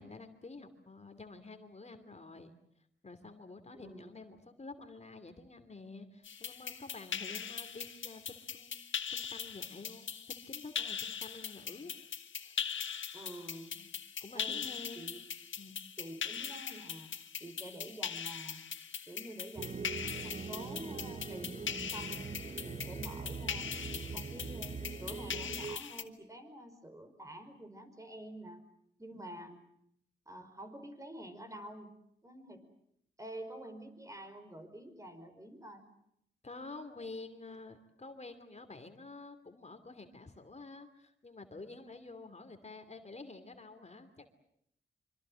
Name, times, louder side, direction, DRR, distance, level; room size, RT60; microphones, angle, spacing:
voice 1, 0.0-2.5 3.0-11.9 12.4-12.6 13.8-13.9 14.2-15.1 15.6-15.8 36.4-44.3, left 3 dB, 35° left, 7 dB, 2.8 m, -49 dB
voice 2, 3.7-4.1 13.1-13.8 14.3-14.7 15.0-15.2 16.0-17.1 17.4-18.6 19.1-22.3 22.6-23.7 24.1-28.7 29.0-29.6 30.3-31.9 32.2-32.7 33.2-35.9, right 1 dB, 15° right, 7 dB, 5.2 m, -48 dB
sound 1, 6.2-26.0, left 7 dB, 80° left, 1.7 m, -41 dB
sound 2, 19.6-25.8, right 5 dB, 35° right, 1.1 m, -42 dB
25.5 x 25.5 x 7.6 m, 0.74 s
cardioid pair, 80°, 20 cm